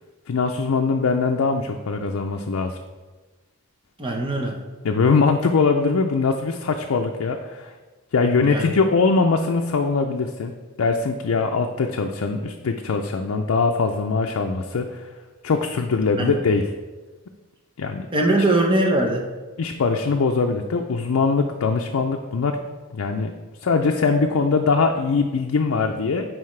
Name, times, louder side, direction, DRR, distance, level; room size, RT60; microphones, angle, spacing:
voice 1, 0.3-2.8 4.8-7.7 8.1-10.5 10.8-15.1 15.4-16.7 17.8-18.1 19.6-22.6 22.9-23.3 23.6-26.2, left 4 dB, 80° left, 3 dB, 0.5 m, -22 dB
voice 2, 4.0-4.6 8.4-8.7 16.2-16.4 18.1-19.2, right 2 dB, 25° right, 1 dB, 0.9 m, -21 dB
9.3 x 4.8 x 3.2 m, 1.3 s
head